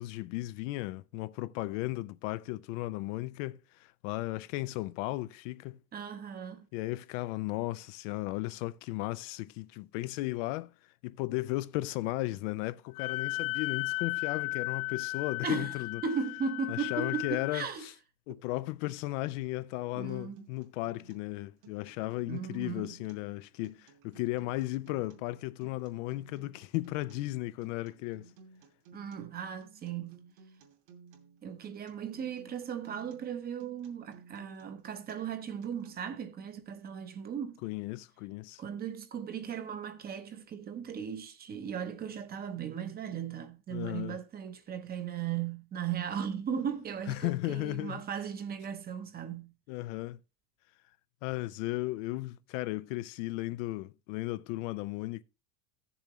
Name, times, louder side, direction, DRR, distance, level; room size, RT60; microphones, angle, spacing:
voice 1, 0.0-5.8 6.7-10.7 11.0-16.0 16.7-17.9 18.3-28.3 37.6-38.6 43.7-44.2 47.1-48.0 49.7-50.2 51.2-55.2, left 18 dB, 60° left, 0.5 m, -35 dB
voice 2, 5.9-6.7 15.4-17.9 19.9-20.5 22.3-22.9 28.9-30.2 31.4-37.6 38.6-49.5, right 7 dB, 20° right, 0.7 m, -37 dB
Wind instrument woodwind instrument, 12.9-17.6, left 21 dB, 90° left, 0.8 m, -35 dB
Acoustic guitar, 20.1-36.1, right 5 dB, 65° right, 2.7 m, -57 dB
15.0 x 7.0 x 3.0 m
supercardioid pair, 150°, 43 cm